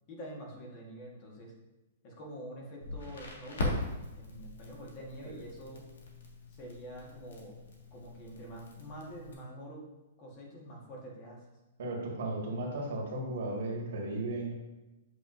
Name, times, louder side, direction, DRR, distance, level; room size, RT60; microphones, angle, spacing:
voice 1, 0.1-1.5 2.0-3.8 4.1-5.9 6.5-7.6 7.9-9.9 10.2-11.5, right 1 dB, 30° left, -2 dB, 1.4 m, -46 dB
Crackle, 2.8-9.3, left 2 dB, 85° left, 1.6 m, -40 dB
voice 2, 11.8-14.5, right 2 dB, 60° right, -1 dB, 1.7 m, -35 dB
8.1 x 5.7 x 2.6 m, 1.0 s
hypercardioid pair, 170°, 0 cm